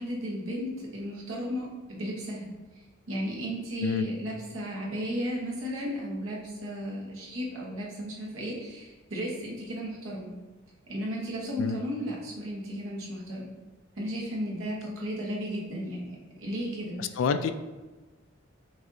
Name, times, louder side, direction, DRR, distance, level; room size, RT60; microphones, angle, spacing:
voice 1, 0.0-2.5 3.1-10.3 10.9-13.5 14.0-17.0, equal, 85° right, -4 dB, 1.1 m, -34 dB
voice 2, 17.2-17.5, left 6 dB, 70° left, 9 dB, 0.3 m, -27 dB
6.1 x 2.6 x 2.7 m, 1.2 s
head